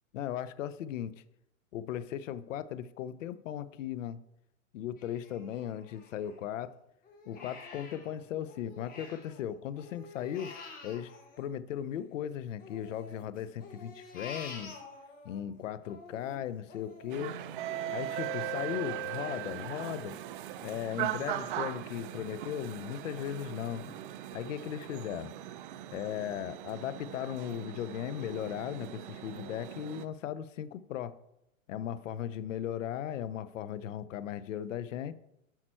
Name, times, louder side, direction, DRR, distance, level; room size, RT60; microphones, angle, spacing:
voice 1, 0.1-1.1 1.7-4.2 4.7-6.7 7.3-10.5 10.8-11.1 11.4-14.8 15.2-17.4 17.9-20.2 20.6-23.8 24.3-25.3 25.9-31.2 31.7-35.1, left 10 dB, 65° left, 14 dB, 0.7 m, -37 dB
Crying sobbing, 5.0-6.6 7.0-9.4 9.7-12.2 12.6-15.4 15.8-21.3 21.7-21.8 22.2-22.8 23.3-23.4 23.8-24.0, left 3 dB, 20° left, 1.4 m, -49 dB
sound 1, 17.1-30.0, right 11 dB, 40° right, 0.5 m, -39 dB
8.9 x 5.8 x 4.4 m, 0.83 s
hypercardioid pair, 135°, 41 cm